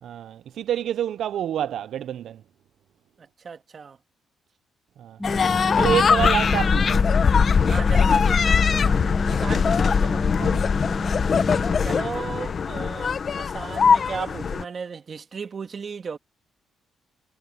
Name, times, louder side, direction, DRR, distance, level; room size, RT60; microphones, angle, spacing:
voice 1, 0.0-2.4 5.0-5.2 5.8-7.1 10.4-10.6, right 10 dB, 70° right, 0.5 m, -27 dB
voice 2, 3.2-4.0 7.7-10.2 11.8-16.2, right 5 dB, 45° right, 1.9 m, -35 dB
sound 1, 5.2-14.6, left 6 dB, 45° left, 0.7 m, -21 dB
sound 2, 5.2-11.8, left 1 dB, 5° left, 2.0 m, -31 dB
sound 3, 5.3-11.6, left 11 dB, 75° left, 6.2 m, -43 dB
cardioid pair, 90°, 0 cm